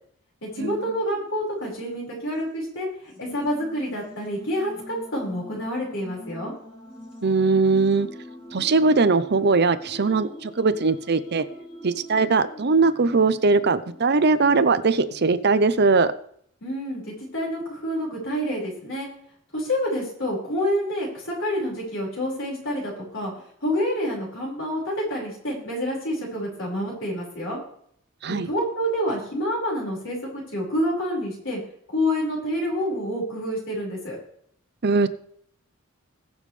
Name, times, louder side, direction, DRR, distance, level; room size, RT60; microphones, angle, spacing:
voice 1, 0.4-6.5 16.6-19.1 19.5-23.3 23.6-27.6 28.3-31.6 31.9-34.2, equal, 65° left, -2 dB, 5.1 m, -28 dB
sound 1, 1.0-1.6 1.9-2.0 3.0-15.5, equal, 25° left, 2.9 m, -44 dB
voice 2, 7.2-8.1 8.5-11.4 11.8-16.1 28.2-28.5 34.8-35.1, right 4 dB, 55° right, 12 dB, 0.7 m, -20 dB
21.0 x 7.2 x 3.3 m, 0.66 s
head